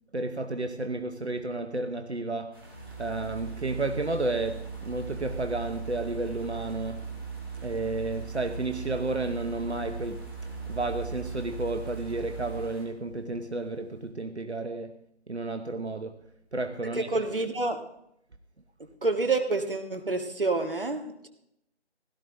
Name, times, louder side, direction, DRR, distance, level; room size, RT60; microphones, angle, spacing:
voice 1, 0.1-2.5 3.0-7.1 7.6-10.2 10.7-15.0 15.3-16.2 16.5-17.1, right 2 dB, 75° right, 1.1 m, -32 dB
sound 1, 2.5-12.8, right 1 dB, 20° right, 2.3 m, -50 dB
Organ, 2.6-12.9, right 5 dB, 20° left, 1.8 m, -39 dB
voice 2, 16.9-17.8 19.0-21.3, right 3 dB, 55° right, 1.6 m, -28 dB
16.5 x 12.5 x 3.7 m
figure-of-eight pair, 160°, 33 cm